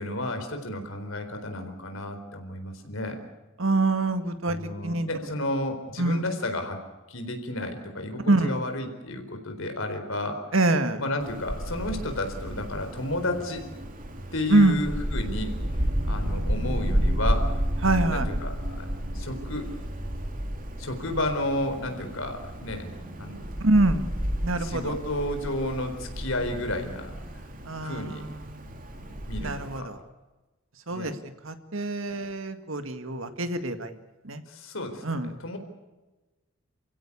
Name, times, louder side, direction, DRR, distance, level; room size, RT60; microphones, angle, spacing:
voice 1, 0.0-3.2 4.4-6.8 7.1-10.4 11.0-13.6 14.3-17.5 18.1-18.9 19.1-19.7 20.8-22.9 23.2-23.4 24.5-27.4 27.8-28.3 29.0-30.0 30.9-31.1 34.5-35.6, left 1 dB, 70° left, 6 dB, 4.3 m, -32 dB
voice 2, 3.6-4.6 4.8-5.1 6.0-6.2 8.3-8.5 10.5-11.0 14.5-14.7 17.8-18.3 23.6-24.1 24.4-24.9 27.7-28.2 29.4-29.9 30.9-31.1 31.4-33.9 34.3-34.4 35.0-35.3, right 2 dB, 70° right, 9 dB, 2.0 m, -24 dB
Wind, 11.2-29.8, equal, 40° right, 2.8 m, -31 dB
29.0 x 16.0 x 8.4 m, 1.2 s
head